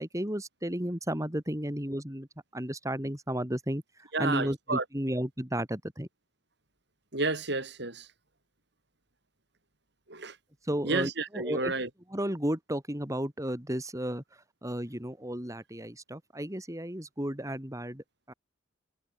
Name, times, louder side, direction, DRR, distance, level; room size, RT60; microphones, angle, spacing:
voice 1, 0.0-2.3 2.5-6.1 10.6-11.7 12.1-14.2 14.6-18.3, right 1 dB, 15° right, 3.8 m, -33 dB
voice 2, 4.1-4.9 7.1-8.1 10.1-10.4 10.8-11.9, right 3 dB, 60° right, 7.2 m, -31 dB
head